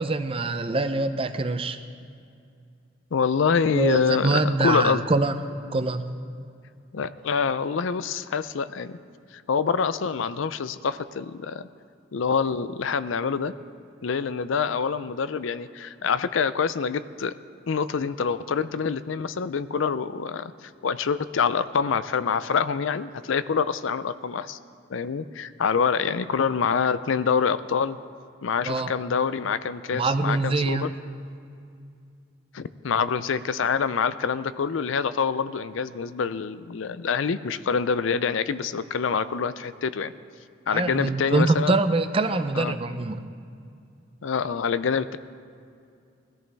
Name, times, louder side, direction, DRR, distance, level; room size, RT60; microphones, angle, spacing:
voice 1, 0.0-1.8 3.7-5.3 5.7-6.0 28.7-28.9 29.9-30.9 40.7-43.2, right 3 dB, 25° right, 9 dB, 0.5 m, -24 dB
voice 2, 3.1-5.0 6.9-9.0 9.3-11.7 12.1-13.5 14.0-17.3 17.7-24.6 24.9-28.0 28.4-30.9 32.5-40.1 40.7-41.8 42.6-42.7 44.2-45.2, left 6 dB, 75° left, 14 dB, 0.5 m, -26 dB
20.5 x 14.0 x 3.4 m, 2.4 s
head